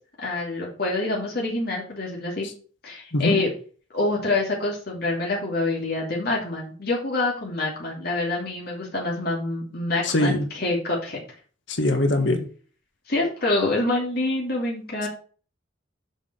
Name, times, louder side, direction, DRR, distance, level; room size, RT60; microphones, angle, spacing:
voice 1, 0.2-2.5 2.8-3.5 3.9-11.2 13.1-15.1, left 2 dB, 50° left, -2 dB, 2.7 m, -26 dB
voice 2, 10.0-10.4 11.7-12.4, left 1 dB, 65° left, 6 dB, 1.6 m, -22 dB
7.2 x 5.9 x 6.0 m, 0.41 s
head